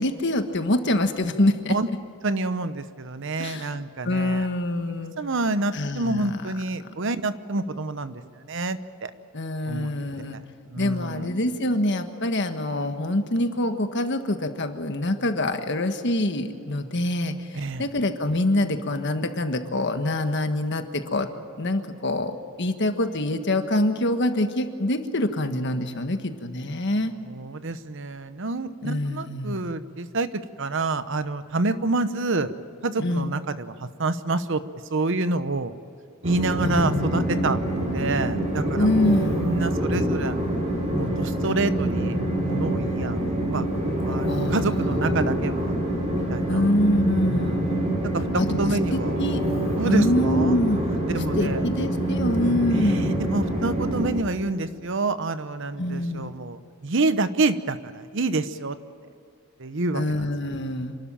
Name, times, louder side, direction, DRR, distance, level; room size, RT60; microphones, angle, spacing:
voice 1, 0.0-1.7 3.4-5.1 5.7-6.5 9.3-10.4 10.8-21.3 21.6-27.1 28.8-29.6 33.0-33.3 36.6-37.3 38.7-39.5 44.3-45.3 46.5-47.8 48.3-49.4 49.8-50.8 51.4-53.2 55.8-56.4 59.9-61.0, left 1 dB, 55° left, 7 dB, 1.5 m, -25 dB
voice 2, 2.2-4.5 5.2-8.2 8.5-9.1 9.7-9.9 10.7-11.3 17.5-17.9 27.3-32.5 32.8-34.6 34.9-35.7 36.2-38.8 39.3-40.3 40.9-43.6 44.1-45.7 46.1-46.6 47.3-47.7 48.1-48.2 48.6-49.2 49.8-50.6 51.0-51.6 52.7-58.8 59.6-60.3, right 2 dB, 60° right, 12 dB, 0.9 m, -28 dB
Train, 36.2-54.1, right 1 dB, 30° right, 4.9 m, -26 dB
27.0 x 12.5 x 8.9 m, 2.6 s
head